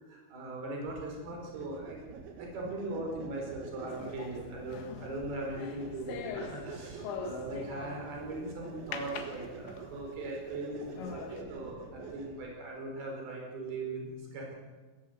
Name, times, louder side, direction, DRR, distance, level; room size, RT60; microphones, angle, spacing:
voice 1, 0.1-2.0 2.4-14.6, right 2 dB, 50° right, 0 dB, 6.7 m, -40 dB
sound 1, 0.9-12.5, right 4 dB, 65° right, 4.7 m, -47 dB
sound 2, 3.9-8.3 8.9-10.0 10.5-10.6 11.0-11.4, left 6 dB, 70° left, 3.9 m, -43 dB
21.5 x 20.0 x 8.1 m, 1.4 s
omnidirectional pair, 5.7 m